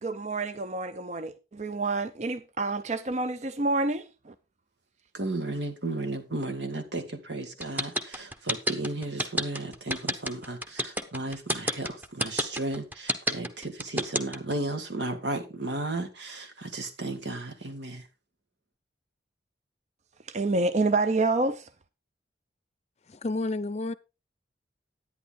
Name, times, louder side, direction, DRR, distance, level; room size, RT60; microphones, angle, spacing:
voice 1, 0.0-4.3 20.3-21.7, right 3 dB, 40° right, 0.5 m, -28 dB
voice 2, 5.1-18.1, right 2 dB, 80° right, 2.0 m, -34 dB
sound 1, 7.6-14.5, equal, 10° right, 1.0 m, -28 dB
voice 3, 23.1-23.9, left 2 dB, 40° left, 0.6 m, -30 dB
11.0 x 9.6 x 3.7 m
head